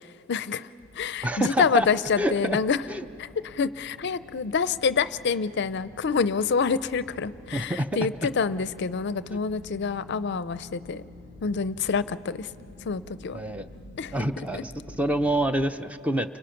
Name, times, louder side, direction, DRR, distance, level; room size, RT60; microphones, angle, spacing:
voice 1, 0.3-0.7 0.9-2.8 3.2-11.0 11.4-12.5 12.9-13.4 14.0-14.1 14.5-14.6, left 5 dB, 55° left, 15 dB, 0.5 m, -27 dB
sound 1, 0.8-15.7, left 2 dB, 60° right, 7.9 m, -48 dB
voice 2, 1.2-1.9 2.2-2.6 2.9-3.0 7.5-8.1 9.3-9.4 13.3-13.7 14.1-16.4, equal, 5° right, 9 dB, 0.6 m, -27 dB
30.0 x 26.0 x 5.8 m, 2.9 s
head